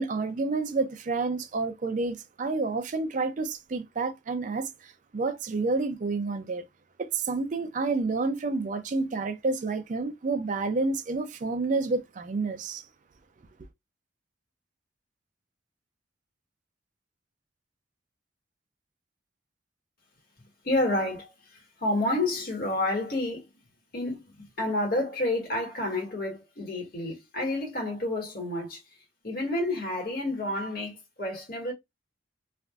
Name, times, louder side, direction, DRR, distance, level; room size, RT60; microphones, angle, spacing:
voice 1, 0.0-6.6 7.0-12.9, right 3 dB, 40° right, 0.4 m, -29 dB
voice 2, 20.6-21.3 21.8-23.5 23.9-28.8 29.2-31.7, left 1 dB, 55° left, 1.6 m, -29 dB
3.3 x 2.5 x 2.3 m
head